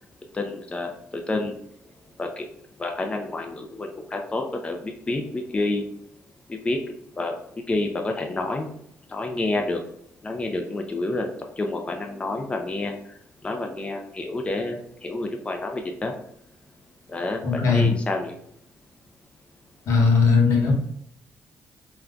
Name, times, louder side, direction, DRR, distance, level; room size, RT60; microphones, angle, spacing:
voice 1, 0.3-1.5 2.2-2.5 2.8-5.8 6.5-6.8 7.2-7.4 7.7-8.7 9.1-9.8 10.2-11.3 11.6-12.9 13.4-16.1 17.1-18.4, left 2 dB, 20° left, 3 dB, 0.4 m, -28 dB
voice 2, 17.4-17.9 19.9-20.7, left 4 dB, 75° left, 0 dB, 0.9 m, -18 dB
3.7 x 2.2 x 2.3 m, 0.72 s
cardioid pair, 85°, 5 cm